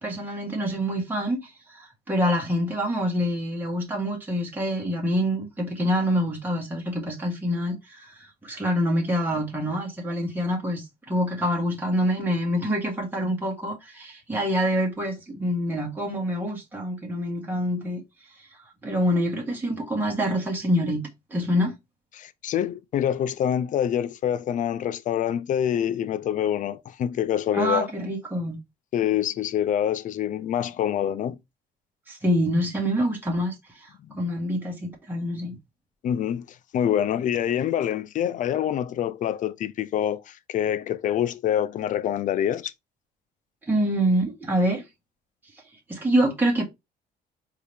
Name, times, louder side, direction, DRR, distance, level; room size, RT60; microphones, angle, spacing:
voice 1, 0.0-18.0 18.8-21.7 27.5-28.6 32.1-35.6 43.7-44.8 45.9-46.6, equal, 10° right, 1.5 m, -26 dB
voice 2, 22.1-27.9 28.9-31.4 36.0-42.7, left 10 dB, 50° left, 0.4 m, -26 dB
4.7 x 2.8 x 3.4 m
cardioid pair, 110°, 17 cm